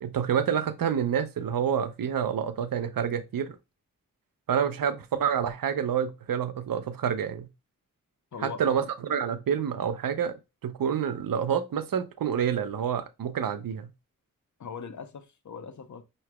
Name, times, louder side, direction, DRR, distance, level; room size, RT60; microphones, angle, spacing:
voice 1, 0.0-3.6 4.5-7.5 8.4-13.9, right 8 dB, 80° right, 0.7 m, -28 dB
voice 2, 8.3-8.8 14.6-16.0, left 6 dB, 60° left, 0.8 m, -40 dB
5.7 x 3.2 x 2.2 m
cardioid pair, 50°, 33 cm